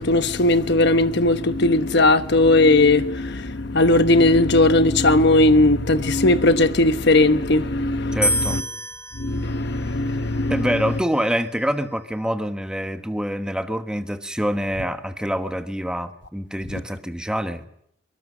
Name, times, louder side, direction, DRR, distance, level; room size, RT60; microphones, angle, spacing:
voice 1, 0.0-8.6 9.1-10.7 16.7-16.8, left 2 dB, 60° left, 1.2 m, -18 dB
voice 2, 8.1-8.6 10.5-17.6, equal, 5° right, 1.3 m, -26 dB
sound 1, 8.2-11.4, equal, 15° left, 1.7 m, -29 dB
23.5 x 23.0 x 6.3 m
head